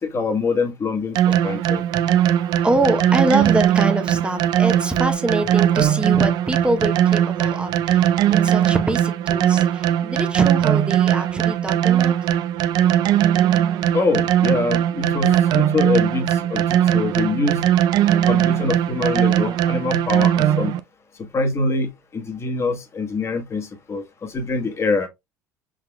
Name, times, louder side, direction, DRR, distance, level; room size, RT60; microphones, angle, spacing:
voice 1, 0.0-2.0 13.9-17.6 18.2-20.7 21.3-25.1, left 3 dB, 30° left, 1.3 m, -24 dB
sound 1, 1.2-20.8, right 11 dB, 55° right, 0.4 m, -19 dB
voice 2, 2.6-12.3, right 2 dB, 10° right, 0.8 m, -24 dB
5.6 x 3.7 x 2.2 m
hypercardioid pair, 70°, 9 cm